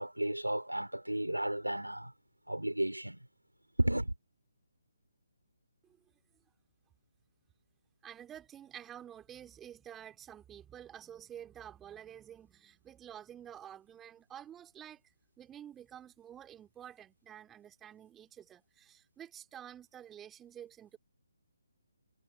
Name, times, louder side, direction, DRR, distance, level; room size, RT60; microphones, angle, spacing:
voice 1, 0.0-2.1 2.5-3.2 3.8-4.1, right 1 dB, 85° right, 4.4 m, -33 dB
voice 2, 8.0-15.0 15.4-21.0, right 10 dB, 10° right, 3.0 m, -50 dB
figure-of-eight pair, 140°, 0 cm